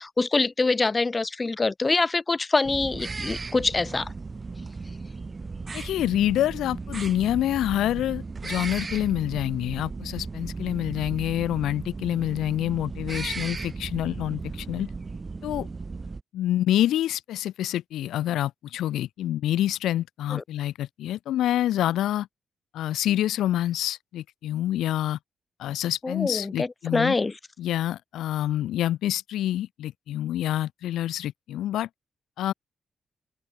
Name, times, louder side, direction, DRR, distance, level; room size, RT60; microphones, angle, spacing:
voice 1, 0.0-4.1 20.3-20.4 26.0-27.3, left 3 dB, 35° left, 1.2 m, -25 dB
sound 1, 2.6-16.2, right 4 dB, 40° right, 6.3 m, -36 dB
voice 2, 5.7-14.9 15.4-15.7 16.3-22.3 22.7-25.2 25.6-27.1 27.6-31.9 32.4-32.5, left 13 dB, 85° left, 1.0 m, -27 dB
open air
supercardioid pair, 50°, 0 cm